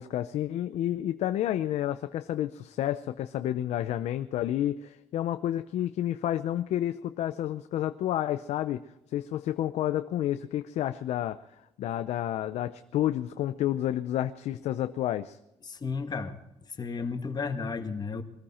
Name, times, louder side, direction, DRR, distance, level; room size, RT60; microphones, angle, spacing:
voice 1, 0.0-8.8 9.1-11.4 11.8-15.4, left 12 dB, 80° left, 10 dB, 0.6 m, -30 dB
voice 2, 15.6-16.4 16.8-18.2, left 4 dB, 40° left, 6 dB, 1.8 m, -33 dB
21.5 x 14.0 x 4.3 m, 0.86 s
cardioid pair, 85°, 11 cm